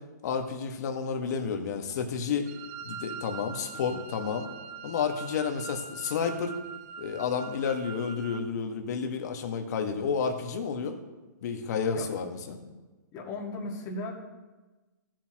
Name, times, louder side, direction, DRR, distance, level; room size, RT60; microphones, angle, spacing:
voice 1, 0.2-2.5 2.8-4.5 4.8-6.6 7.0-11.0 11.4-12.6, left 6 dB, 55° left, 5 dB, 1.6 m, -31 dB
Wind instrument woodwind instrument, 2.5-8.5, right 6 dB, 35° right, 0.7 m, -43 dB
voice 2, 13.1-14.1, left 2 dB, 30° left, -1 dB, 2.0 m, -36 dB
16.0 x 7.6 x 3.0 m, 1.2 s
hypercardioid pair, 130°, 10 cm